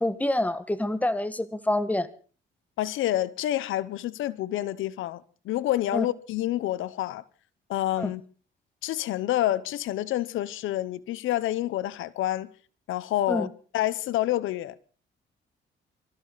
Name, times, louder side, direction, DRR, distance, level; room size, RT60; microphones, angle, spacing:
voice 1, 0.0-2.1 5.9-6.1 8.0-8.1 13.3-13.5, left 1 dB, 5° left, 1.4 m, -27 dB
voice 2, 2.8-7.2 7.7-8.2 8.8-12.5 12.9-13.5 13.7-14.8, left 14 dB, 85° left, 0.8 m, -28 dB
24.5 x 14.0 x 4.0 m
cardioid pair, 90°, 20 cm